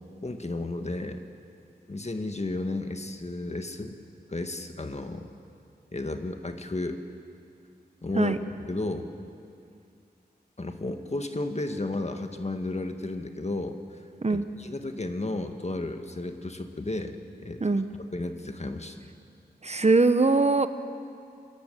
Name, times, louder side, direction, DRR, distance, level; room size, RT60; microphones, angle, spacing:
voice 1, 0.2-1.2 1.9-4.0 4.3-5.2 5.9-7.0 8.0-8.4 8.7-9.1 10.6-13.8 14.3-17.6 18.1-19.0, left 2 dB, 40° left, 6 dB, 1.7 m, -33 dB
voice 2, 19.6-20.7, right 3 dB, 40° right, 10 dB, 1.0 m, -22 dB
24.0 x 13.5 x 9.3 m, 2.5 s
cardioid pair, 40°, 17 cm